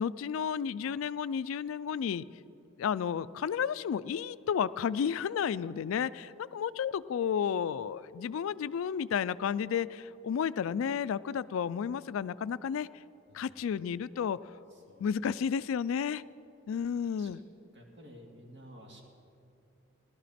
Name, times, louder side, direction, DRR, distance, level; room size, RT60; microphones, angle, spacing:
voice 1, 0.0-2.2 2.8-12.9 13.3-14.4 15.0-16.2 16.7-17.4, left 7 dB, 85° left, 17 dB, 0.3 m, -32 dB
voice 2, 13.3-13.7 14.7-15.3 17.2-17.3 17.7-19.0, equal, 60° right, 0 dB, 2.1 m, -53 dB
16.5 x 12.0 x 4.3 m, 2.7 s
head